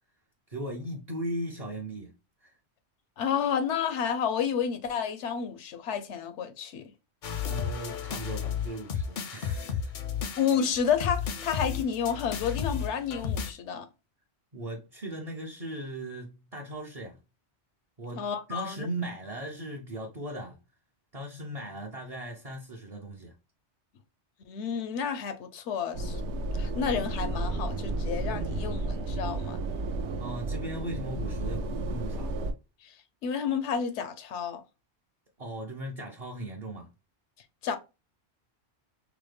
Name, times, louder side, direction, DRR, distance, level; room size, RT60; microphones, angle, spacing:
voice 1, 0.5-2.1 2.4-2.5 7.5-9.9 14.5-17.2 18.0-20.6 21.1-23.3 30.2-32.3 35.4-36.9, right 1 dB, 40° right, 0.6 m, -38 dB
voice 2, 3.2-6.9 10.4-13.9 18.2-18.9 24.5-26.2 26.5-29.6 32.8-32.9 33.2-34.6 37.6-37.8, left 7 dB, 85° left, 0.9 m, -30 dB
sound 1, 7.2-13.5, left 7 dB, 60° left, 0.6 m, -33 dB
sound 2, 25.9-32.5, right 2 dB, 80° right, 0.9 m, -32 dB
4.8 x 2.1 x 3.2 m
omnidirectional pair, 1.2 m